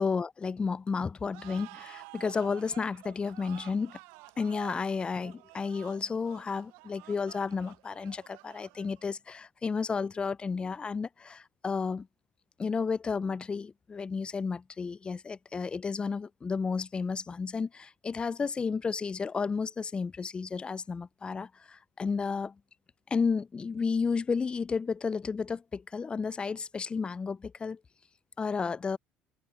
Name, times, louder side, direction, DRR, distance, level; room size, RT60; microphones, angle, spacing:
voice 1, 0.0-4.0 4.4-12.1 12.6-22.5 23.1-27.8 28.4-29.0, left 5 dB, 25° left, 0.3 m, -32 dB
sound 1, 1.3-9.2, right 23 dB, 85° right, 0.5 m, -51 dB
supercardioid pair, 90°, 4 cm